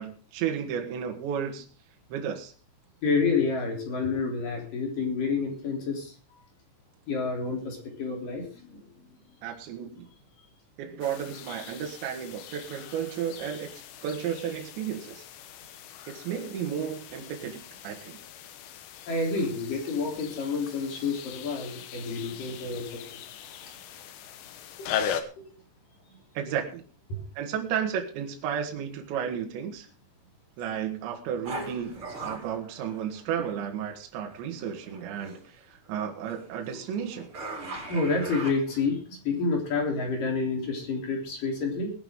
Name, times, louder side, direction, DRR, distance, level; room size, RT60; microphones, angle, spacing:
voice 1, 0.0-1.7 2.1-2.5 9.4-10.1 10.8-13.7 14.0-15.2 16.1-18.2 26.4-26.8 27.4-29.9 30.6-37.3, right 8 dB, 70° right, 2 dB, 3.8 m, -33 dB
voice 2, 3.0-6.1 7.1-8.8 19.1-23.0 27.1-27.2 37.9-41.9, left 4 dB, 45° left, 1 dB, 4.9 m, -29 dB
sound 1, 11.0-25.2, left 9 dB, 80° left, 3.7 m, -40 dB
sound 2, 31.4-33.6 34.3-35.5 35.9-39.0, right 2 dB, 25° right, 5.1 m, -40 dB
21.0 x 10.5 x 3.8 m, 0.38 s
omnidirectional pair, 5.7 m